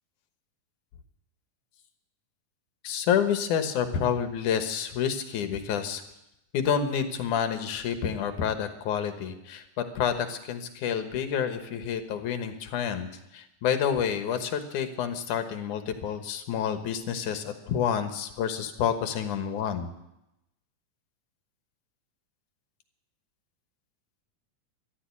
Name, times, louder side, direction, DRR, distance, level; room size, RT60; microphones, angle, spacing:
voice 1, 2.8-6.0 6.5-19.9, left 8 dB, 75° left, 7 dB, 2.7 m, -29 dB
14.0 x 12.0 x 8.4 m, 0.88 s
omnidirectional pair, 3.7 m